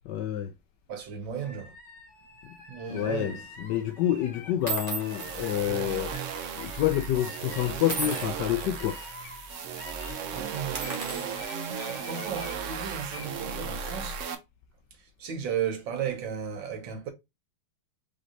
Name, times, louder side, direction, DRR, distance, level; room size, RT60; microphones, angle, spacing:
voice 1, 0.1-0.5 2.9-3.3 3.6-6.1 6.6-9.0, left 12 dB, 75° left, 1.0 m, -28 dB
voice 2, 0.9-1.7 2.7-3.5 10.3-11.4 11.9-14.2 15.0-17.1, right 8 dB, 65° right, 1.8 m, -35 dB
sound 1, 1.4-11.0 11.4-12.6 13.0-13.3, left 3 dB, 55° left, 2.3 m, -47 dB
sound 2, 3.0-3.3 4.0-4.1 4.7-6.6 6.9-7.1 7.9-9.1 9.5-9.6 9.9-10.1 10.6-12.2, right 4 dB, 25° right, 1.1 m, -38 dB
sound 3, 5.0-14.4, right 6 dB, 85° right, 0.6 m, -36 dB
5.1 x 3.9 x 2.6 m
omnidirectional pair, 2.3 m